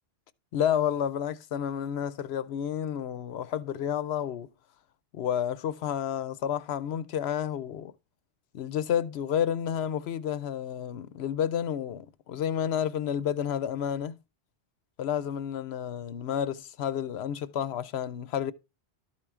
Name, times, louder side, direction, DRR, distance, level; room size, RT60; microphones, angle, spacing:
voice 1, 0.5-4.5 5.1-7.9 8.5-14.2 15.0-18.5, left 9 dB, 75° left, 0.9 m, -30 dB
12.5 x 4.5 x 3.6 m
omnidirectional pair, 1.1 m